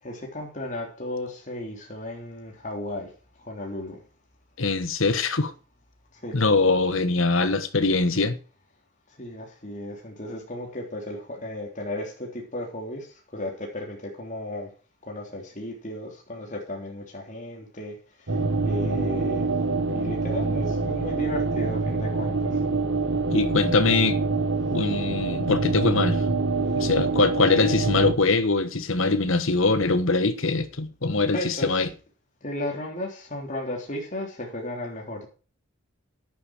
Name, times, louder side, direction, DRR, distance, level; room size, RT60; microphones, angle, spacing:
voice 1, 0.0-3.1 3.4-4.0 6.1-6.4 9.2-14.7 15.0-18.4 18.6-19.5 19.9-22.6 26.7-26.8 31.1-31.9 32.4-35.3, left 1 dB, 35° left, 3.4 m, -35 dB
voice 2, 4.6-5.5 6.3-8.4 23.3-24.2 24.7-26.2 26.7-31.9, left 3 dB, 65° left, 1.3 m, -22 dB
sound 1, 18.3-28.2, right 3 dB, 65° right, 1.3 m, -25 dB
10.5 x 9.6 x 4.9 m
head